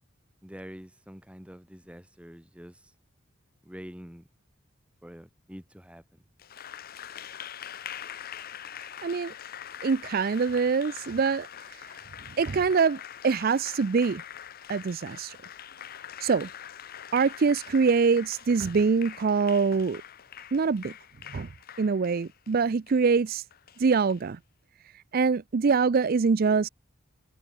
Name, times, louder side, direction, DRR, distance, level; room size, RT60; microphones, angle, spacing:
voice 1, 0.4-2.9 3.6-4.3 5.0-6.2, equal, 5° right, 3.5 m, -46 dB
Applause, 6.4-24.2, left 9 dB, 45° left, 0.7 m, -44 dB
voice 2, 8.8-9.3 9.8-11.9 12.4-14.2 14.7-15.4 16.2-16.5 17.1-20.0 20.5-20.9 21.3-21.5 21.8-23.4 23.8-24.4 24.9-26.7, right 5 dB, 45° right, 0.4 m, -24 dB
head